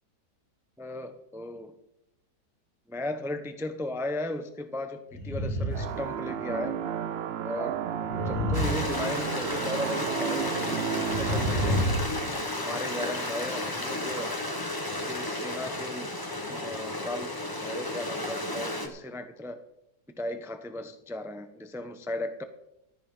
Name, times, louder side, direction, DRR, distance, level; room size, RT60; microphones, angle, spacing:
voice 1, 0.8-1.7 2.9-6.8 7.4-7.8 8.2-12.0 12.5-14.3 14.9-16.1 16.5-17.3 17.6-19.6 20.2-22.4, left 1 dB, ahead, 8 dB, 0.6 m, -36 dB
sound 1, 5.1-6.0 6.3-6.5 8.0-9.6 11.0-12.3, equal, 65° left, 2.7 m, -29 dB
sound 2, 5.7-11.8, right 9 dB, 70° right, 0.6 m, -33 dB
Stream, 8.5-18.9, left 1 dB, 15° left, 1.3 m, -33 dB
15.5 x 13.5 x 3.9 m, 0.85 s
omnidirectional pair, 1.7 m